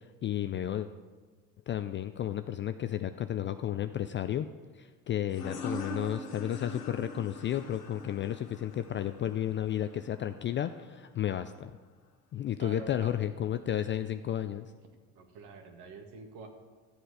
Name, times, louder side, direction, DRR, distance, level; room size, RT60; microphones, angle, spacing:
voice 1, 0.2-0.9 1.7-4.5 4.8-11.7 12.3-14.7, left 11 dB, 30° left, 10 dB, 0.3 m, -32 dB
sound 1, 5.3-10.7, left 2 dB, 90° left, 1.6 m, -42 dB
voice 2, 12.6-13.2 15.2-16.5, right 3 dB, 60° right, 4 dB, 2.0 m, -47 dB
14.0 x 7.8 x 4.8 m, 1.4 s
hypercardioid pair, 70°, 46 cm